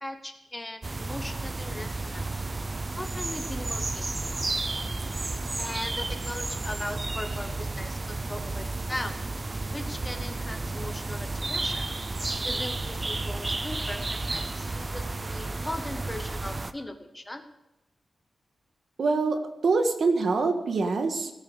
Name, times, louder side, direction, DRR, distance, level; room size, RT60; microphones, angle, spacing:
voice 1, 0.0-2.2 3.0-4.2 5.5-9.3 9.7-11.9 12.4-17.4, left 1 dB, 10° left, 7 dB, 1.0 m, -39 dB
sound 1, 0.8-16.7, right 2 dB, 25° right, 0.6 m, -32 dB
voice 2, 19.0-21.3, right 3 dB, 60° right, 5 dB, 1.6 m, -25 dB
18.0 x 8.9 x 4.9 m, 0.97 s
wide cardioid pair, 165°, 0 cm